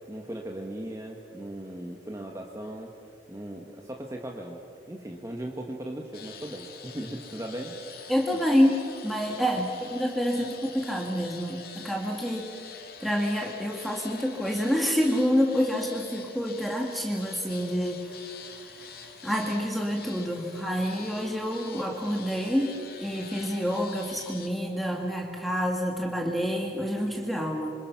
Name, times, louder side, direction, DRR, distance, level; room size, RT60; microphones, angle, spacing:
voice 1, 0.1-2.9 3.3-4.6 4.9-7.8 8.3-8.4, right 1 dB, 15° right, 1 dB, 1.4 m, -38 dB
sound 1, 6.1-24.5, left 6 dB, 55° left, 2.4 m, -45 dB
voice 2, 8.1-12.5 13.0-27.7, equal, ahead, 0 dB, 1.9 m, -28 dB
27.0 x 25.5 x 5.9 m, 2.5 s
head